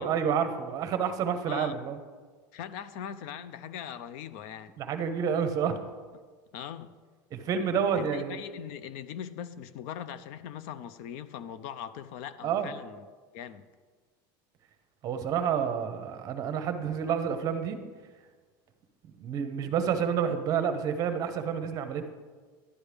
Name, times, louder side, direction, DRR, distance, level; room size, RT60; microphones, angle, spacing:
voice 1, 0.0-2.0 4.8-5.8 7.3-8.4 12.4-12.7 15.0-17.8 19.2-22.0, right 7 dB, 35° right, 8 dB, 0.8 m, -29 dB
voice 2, 2.5-4.7 6.5-6.9 7.9-13.1 13.3-13.7, left 9 dB, 60° left, 13 dB, 0.5 m, -40 dB
11.0 x 9.7 x 3.4 m, 1.4 s
supercardioid pair, 155°, 11 cm